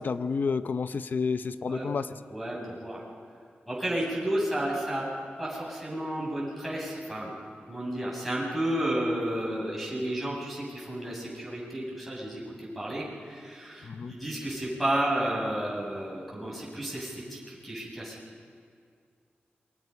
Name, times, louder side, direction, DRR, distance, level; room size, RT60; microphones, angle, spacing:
voice 1, 0.0-2.1 13.8-14.1, left 5 dB, 55° left, 11 dB, 0.7 m, -30 dB
voice 2, 2.3-3.0 3.7-5.0 5.4-7.3 7.7-18.1, right 1 dB, ahead, -4 dB, 7.9 m, -32 dB
28.5 x 23.5 x 5.5 m, 2.3 s
wide cardioid pair, 160°, 4 cm